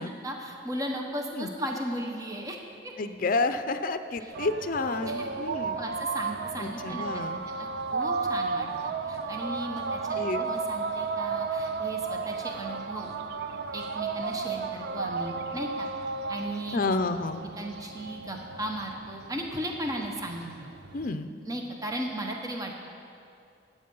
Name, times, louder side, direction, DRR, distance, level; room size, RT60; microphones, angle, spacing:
voice 1, 0.2-2.6 4.2-4.3 5.0-5.3 5.8-13.1 13.7-15.9 16.3-16.8 17.6-20.7 21.5-22.7, right 1 dB, 20° right, 1 dB, 1.0 m, -36 dB
voice 2, 3.0-5.8 6.6-7.4 10.2-10.5 16.7-17.4 20.9-21.3, left 3 dB, 50° left, 9 dB, 0.6 m, -30 dB
sound 1, 4.3-21.1, right 4 dB, 60° right, 0.6 m, -33 dB
14.5 x 8.8 x 5.4 m, 2.5 s
head